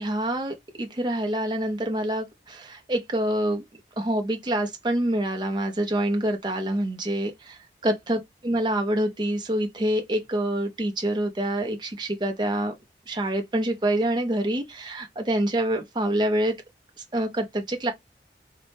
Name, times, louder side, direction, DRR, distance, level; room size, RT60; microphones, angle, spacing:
voice 1, 0.0-3.6 4.0-12.7 13.1-16.5 17.1-17.9, right 1 dB, 25° right, 0.6 m, -26 dB
4.0 x 2.2 x 3.3 m
head